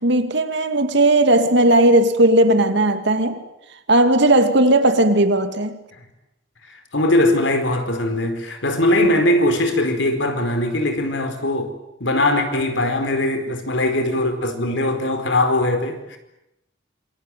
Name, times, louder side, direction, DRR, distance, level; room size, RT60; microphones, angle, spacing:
voice 1, 0.0-3.4 3.9-5.8, right 1 dB, 65° right, 2.5 m, -16 dB
voice 2, 6.7-11.7 12.0-16.2, left 1 dB, 70° left, 4.7 m, -20 dB
26.5 x 23.0 x 9.2 m
head